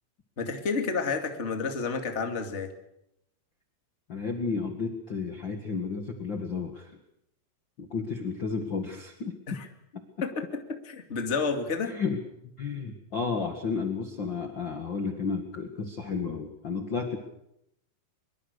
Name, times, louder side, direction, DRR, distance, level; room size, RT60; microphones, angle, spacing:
voice 1, 0.4-2.7 9.5-9.7 10.2-12.0, left 4 dB, 25° left, 5 dB, 2.1 m, -30 dB
voice 2, 4.1-7.0 7.8-9.3 9.9-10.0 11.8-12.2 12.6-17.2, left 5 dB, 40° left, 4 dB, 2.0 m, -32 dB
24.0 x 23.0 x 6.7 m, 0.80 s
omnidirectional pair, 4.3 m